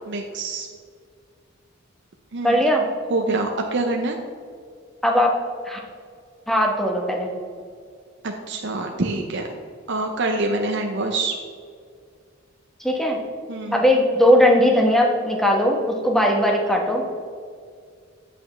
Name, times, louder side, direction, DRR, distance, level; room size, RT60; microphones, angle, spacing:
voice 1, 0.0-0.7 2.3-2.6 3.1-4.2 8.2-9.5 9.9-11.3 13.5-13.8, right 2 dB, 60° right, 2 dB, 0.7 m, -25 dB
voice 2, 2.4-2.8 5.0-5.3 5.7-5.8 6.5-7.3 12.8-13.2 13.7-17.0, equal, ahead, 0 dB, 1.1 m, -19 dB
8.5 x 7.9 x 3.3 m, 2.1 s
head